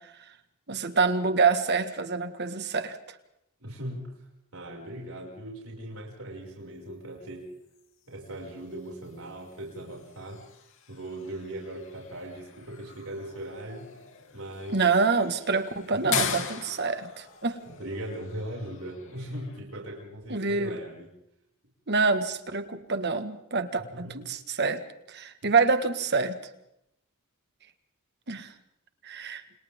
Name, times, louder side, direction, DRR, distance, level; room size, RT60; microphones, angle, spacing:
voice 1, 0.7-3.0 14.7-17.6 20.3-20.8 21.9-24.8 25.1-26.4 28.3-28.5 29.0-29.4, right 4 dB, 50° right, 9 dB, 1.8 m, -26 dB
voice 2, 3.6-7.5 8.1-10.4 10.9-13.9 14.3-14.8 15.9-16.2 17.6-21.1 23.8-24.2 25.4-25.5, right 1 dB, 75° right, -1 dB, 6.3 m, -39 dB
sound 1, 7.7-19.6, left 7 dB, 65° left, 3.1 m, -40 dB
29.0 x 29.0 x 3.7 m, 0.81 s
head